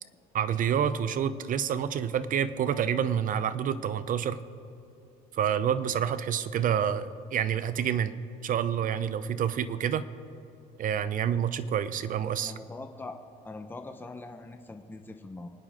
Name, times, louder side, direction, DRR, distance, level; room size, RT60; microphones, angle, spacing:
voice 1, 0.3-4.4 5.3-8.1 8.4-10.1 10.8-12.5, right 8 dB, 55° right, 14 dB, 0.8 m, -28 dB
voice 2, 12.4-13.2 13.4-15.5, left 2 dB, 10° left, 5 dB, 0.9 m, -42 dB
26.5 x 9.7 x 3.7 m, 2.8 s
cardioid pair, 110°, 17 cm